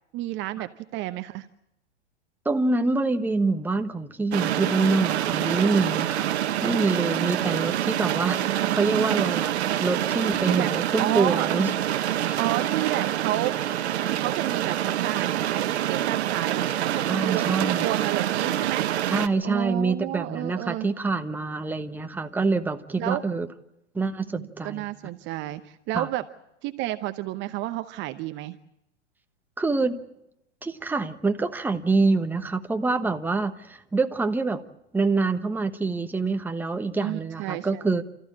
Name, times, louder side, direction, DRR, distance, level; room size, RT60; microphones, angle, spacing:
voice 1, 0.1-1.5 8.4-9.3 10.5-10.7 11.0-11.5 12.4-13.6 14.1-18.9 19.4-20.9 23.0-23.2 24.3-26.2 26.6-28.6 37.0-37.8, right 16 dB, 35° right, 11 dB, 0.8 m, -31 dB
voice 2, 2.4-6.3 6.6-9.5 9.8-11.7 12.2-12.4 17.1-17.8 19.1-23.5 23.9-24.9 25.9-26.1 29.6-30.0 30.6-34.6 34.9-38.0, right 3 dB, 5° right, 7 dB, 1.2 m, -26 dB
sound 1, 4.3-19.3, right 12 dB, 65° right, 1.2 m, -26 dB
29.5 x 14.5 x 8.7 m, 0.84 s
hypercardioid pair, 115°, 35 cm